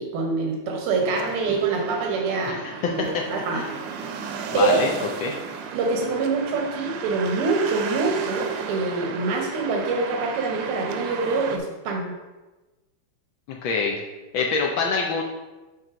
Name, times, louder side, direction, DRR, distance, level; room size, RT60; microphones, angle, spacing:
voice 1, 0.0-2.5 2.9-3.6 4.5-4.8 5.7-12.1, right 3 dB, 90° right, 1 dB, 1.8 m, -25 dB
sound 1, 1.0-11.6, right 6 dB, 70° right, 1.2 m, -34 dB
voice 2, 2.4-3.2 3.5-3.7 4.5-4.9 5.2-5.3 13.5-14.0 14.3-15.2, left 5 dB, 75° left, 0 dB, 1.4 m, -25 dB
7.6 x 3.1 x 5.0 m, 1.1 s
omnidirectional pair, 2.3 m